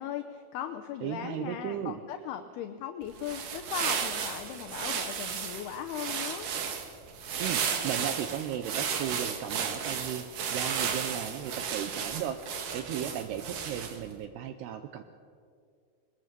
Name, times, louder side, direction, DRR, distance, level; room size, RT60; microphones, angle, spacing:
voice 1, 0.0-6.5, left 10 dB, 90° left, 7 dB, 2.2 m, -38 dB
voice 2, 1.0-2.0 7.4-15.0, right 10 dB, 85° right, 9 dB, 2.3 m, -36 dB
sound 1, 3.1-14.1, right 7 dB, 60° right, 2.3 m, -34 dB
22.0 x 19.5 x 6.8 m, 2.2 s
omnidirectional pair, 5.7 m